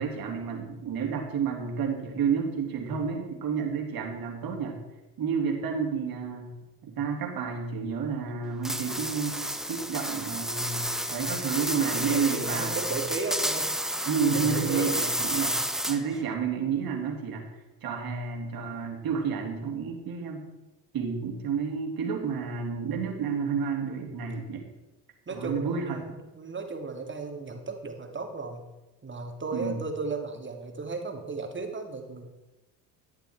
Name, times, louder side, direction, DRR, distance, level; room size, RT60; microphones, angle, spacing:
voice 1, 0.0-4.8 5.2-6.5 6.8-9.4 9.7-12.8 14.0-17.5 17.8-20.5 20.9-24.6 25.3-26.2 29.5-29.8, right 6 dB, 50° right, 2 dB, 3.3 m, -30 dB
sound 1, 8.6-16.2, equal, ahead, 0.8 m, -31 dB
voice 2, 11.7-13.7 14.0-15.0 15.4-15.5 23.9-24.3 25.3-26.1 26.4-28.6 29.0-32.3, right 3 dB, 25° right, 4 dB, 2.6 m, -35 dB
14.0 x 10.5 x 4.7 m, 1.0 s
hypercardioid pair, 65°, 47 cm